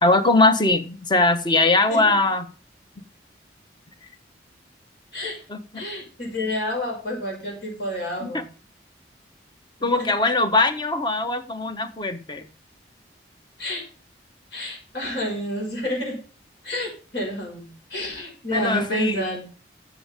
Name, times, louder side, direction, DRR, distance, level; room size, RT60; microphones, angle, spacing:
voice 1, 0.0-2.4 5.5-5.6 8.2-8.4 9.8-12.5 18.5-19.2, left 2 dB, 25° left, 9 dB, 1.0 m, -21 dB
voice 2, 5.1-5.4 5.7-8.4 9.8-10.1 13.6-13.8 14.5-16.2 16.6-19.4, left 1 dB, 70° left, -1 dB, 5.9 m, -29 dB
13.0 x 7.3 x 3.7 m, 0.37 s
head